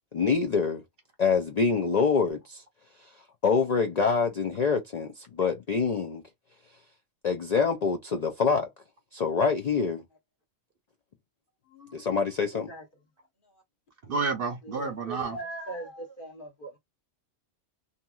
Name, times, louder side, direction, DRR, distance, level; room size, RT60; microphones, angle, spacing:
voice 1, 0.1-0.8 1.2-2.6 3.4-6.2 7.2-8.7 9.1-10.0 11.9-12.7, left 5 dB, 80° left, 0.3 m, -25 dB
voice 2, 11.7-12.2 12.5-12.8 13.5-13.6 14.4-16.8, right 2 dB, 45° left, 1.0 m, -41 dB
voice 3, 14.1-15.4, right 4 dB, 60° right, 0.7 m, -30 dB
2.8 x 2.6 x 2.2 m
omnidirectional pair, 1.3 m